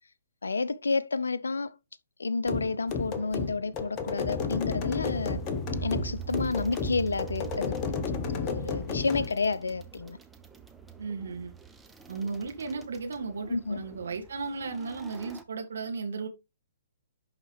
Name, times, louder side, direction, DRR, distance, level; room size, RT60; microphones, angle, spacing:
voice 1, 0.4-1.7 2.2-5.4 5.8-7.8 8.3-10.2 13.5-13.8, left 4 dB, 75° left, 0.6 m, -30 dB
sound 1, 2.5-9.3, left 5 dB, 30° left, 1.1 m, -32 dB
sound 2, 5.0-15.4, right 8 dB, 5° right, 0.8 m, -43 dB
voice 2, 11.0-11.5 12.1-16.3, right 4 dB, 65° right, 2.0 m, -35 dB
11.0 x 4.0 x 3.3 m
figure-of-eight pair, 125°, 0 cm